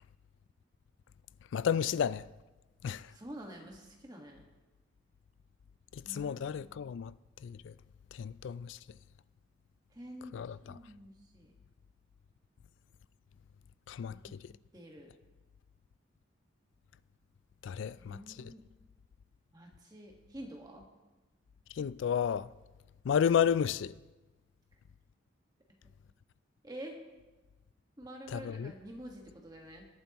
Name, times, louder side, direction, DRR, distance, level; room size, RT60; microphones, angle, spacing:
voice 1, 1.5-2.2 2.8-3.0 6.1-7.1 7.4-7.7 8.2-8.8 10.3-10.6 13.9-14.1 17.6-18.2 21.8-22.5 23.1-23.9 28.3-28.7, left 8 dB, 70° left, 0.3 m, -31 dB
voice 2, 3.1-4.4 6.0-6.4 9.9-10.4 10.7-11.5 14.1-14.3 14.7-15.1 18.0-18.6 19.5-20.9 26.6-27.0 28.0-29.9, right 1 dB, 20° right, 1.5 m, -48 dB
21.0 x 8.8 x 3.0 m
head